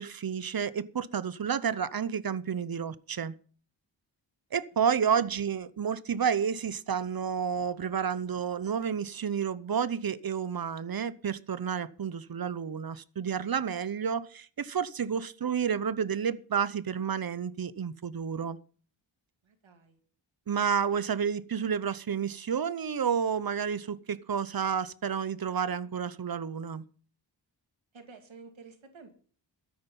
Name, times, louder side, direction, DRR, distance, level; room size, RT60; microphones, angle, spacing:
voice 1, 0.0-3.3 4.5-18.6 20.5-26.8, right 7 dB, 50° right, 0.8 m, -30 dB
voice 2, 19.4-20.0 27.9-29.1, right 4 dB, 85° right, 2.4 m, -51 dB
13.5 x 9.6 x 5.4 m
wide cardioid pair, 110°, 45 cm